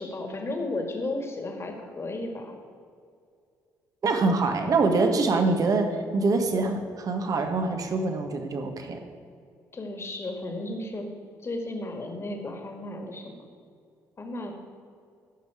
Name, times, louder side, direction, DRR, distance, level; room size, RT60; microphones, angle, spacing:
voice 1, 0.0-2.6 9.7-11.1 11.4-13.4 14.2-14.5, left 2 dB, 35° left, 3 dB, 2.0 m, -34 dB
voice 2, 4.0-9.0, right 3 dB, 50° right, 5 dB, 1.4 m, -25 dB
14.0 x 5.5 x 4.9 m, 2.3 s
supercardioid pair, 60°, 8 cm